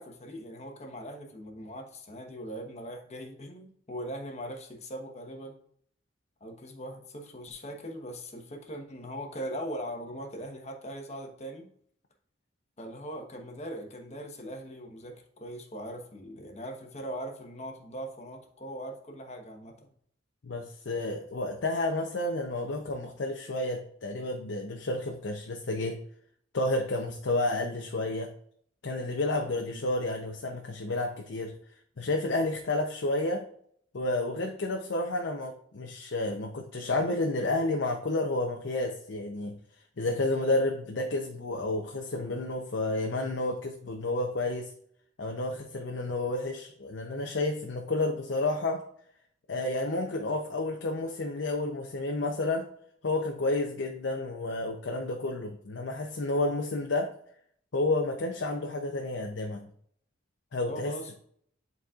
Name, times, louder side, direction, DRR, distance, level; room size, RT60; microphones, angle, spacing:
voice 1, 0.0-5.6 6.4-11.7 12.8-19.9 29.6-29.8 60.7-61.2, equal, 35° left, 3 dB, 1.1 m, -40 dB
voice 2, 20.4-26.0 26.5-28.3 28.8-31.5 32.0-33.4 33.9-39.6 40.0-44.7 45.2-48.8 49.5-52.7 53.0-57.1 57.7-59.7 60.5-60.9, left 2 dB, 70° left, 2 dB, 0.7 m, -30 dB
10.5 x 4.1 x 2.4 m, 0.64 s
head